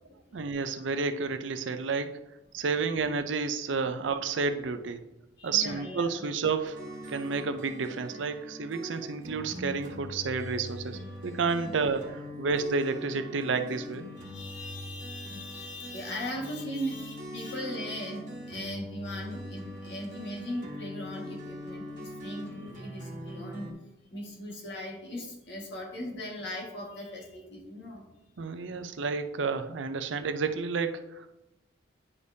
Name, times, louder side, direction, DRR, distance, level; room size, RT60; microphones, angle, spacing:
voice 1, 0.3-2.2 2.5-5.0 5.4-6.8 7.1-14.1 28.4-31.3, right 4 dB, 75° right, 9 dB, 0.5 m, -30 dB
voice 2, 5.4-6.2 11.6-11.7 14.1-23.7 24.1-28.0, equal, 60° left, -2 dB, 1.8 m, -39 dB
sound 1, 6.6-23.7, equal, 40° right, 1.3 m, -42 dB
9.6 x 5.0 x 2.7 m, 0.96 s
head